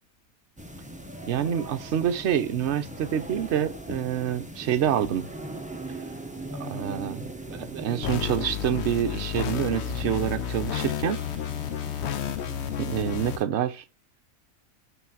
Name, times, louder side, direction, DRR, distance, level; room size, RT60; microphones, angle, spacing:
sound 1, 0.6-13.4, right 1 dB, 5° right, 0.7 m, -40 dB
voice 1, 1.2-5.3 6.6-11.2 12.8-13.8, right 9 dB, 55° right, 0.9 m, -27 dB
sound 2, 8.0-13.4, left 9 dB, 60° left, 0.8 m, -31 dB
5.9 x 3.9 x 5.8 m
omnidirectional pair, 1.5 m